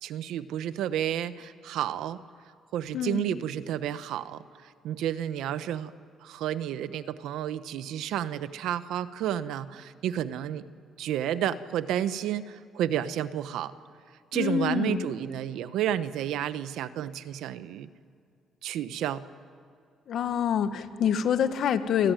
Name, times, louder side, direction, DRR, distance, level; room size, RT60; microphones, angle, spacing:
voice 1, 0.0-2.2 2.7-4.4 4.8-5.9 6.2-10.6 11.0-13.7 14.3-17.9 18.6-19.2, right 10 dB, 85° right, 13 dB, 1.1 m, -31 dB
voice 2, 2.9-3.3 14.3-15.0 20.1-22.1, left 8 dB, 70° left, 9 dB, 1.7 m, -26 dB
28.5 x 21.0 x 9.2 m, 2.2 s
cardioid pair, 90°, 0 cm